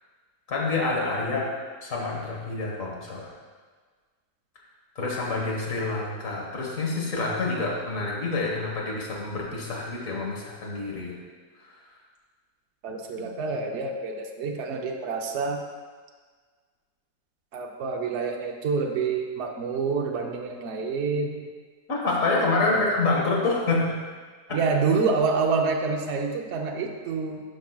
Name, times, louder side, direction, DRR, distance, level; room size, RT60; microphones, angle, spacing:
voice 1, 0.5-1.5 1.8-3.3 4.9-11.2 11.6-11.8 21.9-23.9 24.5-24.6, left 3 dB, 55° left, -3 dB, 1.7 m, -27 dB
voice 2, 12.8-15.6 17.5-21.4 22.6-22.9 24.5-27.4, right 4 dB, 55° right, 2 dB, 0.9 m, -27 dB
11.0 x 5.9 x 2.3 m, 1.5 s
omnidirectional pair, 1.7 m